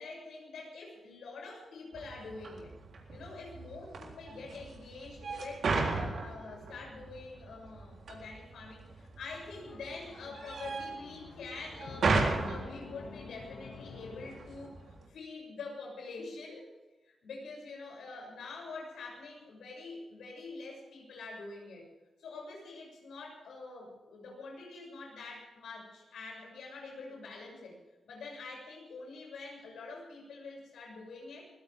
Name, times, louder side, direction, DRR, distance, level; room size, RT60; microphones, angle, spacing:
voice 1, 0.0-2.7 3.1-16.6 17.0-21.9 22.2-27.8 28.1-31.5, left 3 dB, 90° left, 0 dB, 7.3 m, -46 dB
sound 1, 1.9-15.1, right 3 dB, 65° right, 3.8 m, -37 dB
sound 2, 9.5-15.0, left 4 dB, 60° left, 1.7 m, -50 dB
23.0 x 16.5 x 3.7 m, 1.2 s
cardioid pair, 85°, 0 cm